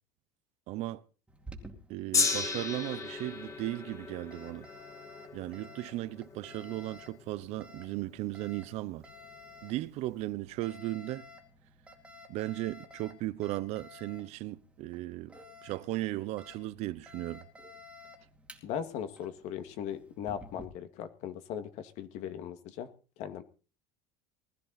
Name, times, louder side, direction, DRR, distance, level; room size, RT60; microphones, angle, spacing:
voice 1, 0.7-1.0 1.9-4.7 5.3-9.0 9.6-11.3 12.3-15.3 15.6-17.4, right 16 dB, 55° right, 0.9 m, -36 dB
Alarm, 1.3-20.7, left 1 dB, 10° right, 2.4 m, -53 dB
Gong, 2.1-8.5 9.3-9.4, left 4 dB, 25° left, 2.1 m, -35 dB
voice 2, 18.6-22.9 23.2-23.4, left 9 dB, 55° left, 2.1 m, -38 dB
20.0 x 13.5 x 4.2 m
cardioid pair, 155°, 14 cm